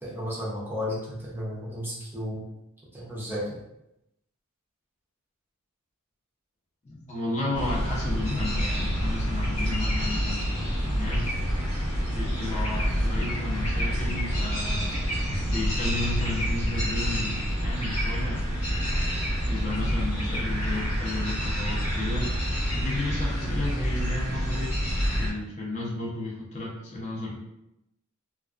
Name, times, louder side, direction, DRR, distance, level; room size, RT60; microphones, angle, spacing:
voice 1, 0.0-2.4 2.9-3.6, left 1 dB, 10° right, -6 dB, 0.5 m, -33 dB
voice 2, 6.8-11.4 12.1-15.0 15.5-18.6 19.5-22.3 22.8-24.7 25.2-27.4, left 2 dB, 35° left, -4 dB, 0.6 m, -33 dB
sound 1, 7.5-25.3, equal, 90° left, 0.9 m, -27 dB
2.3 x 2.2 x 2.4 m, 0.85 s
head